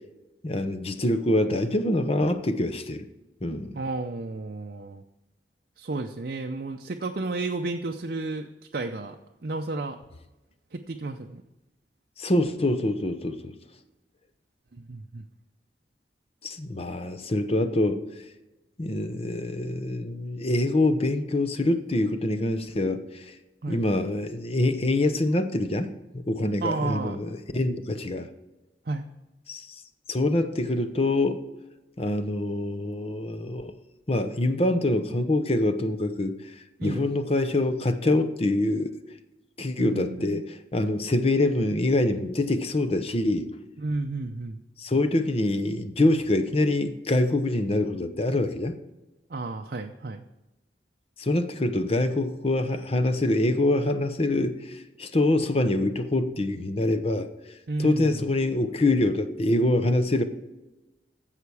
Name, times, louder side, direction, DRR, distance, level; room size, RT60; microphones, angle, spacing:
voice 1, 0.4-3.0 3.4-3.8 12.2-13.5 16.4-18.0 18.8-23.3 23.7-28.3 29.5-29.8 30.1-31.4 32.0-33.7 34.1-36.3 36.8-38.9 39.6-40.4 40.7-43.5 44.8-48.8 51.2-57.3 57.8-60.2, left 2 dB, 35° left, 9 dB, 0.8 m, -25 dB
voice 2, 3.7-5.0 5.8-10.0 10.7-11.4 14.7-15.2 23.6-23.8 26.6-27.2 28.9-29.1 36.8-37.2 39.8-40.5 43.8-44.6 49.3-50.2 57.7-58.2, right 3 dB, 55° right, 4 dB, 0.6 m, -32 dB
15.0 x 5.8 x 4.8 m, 1.0 s
head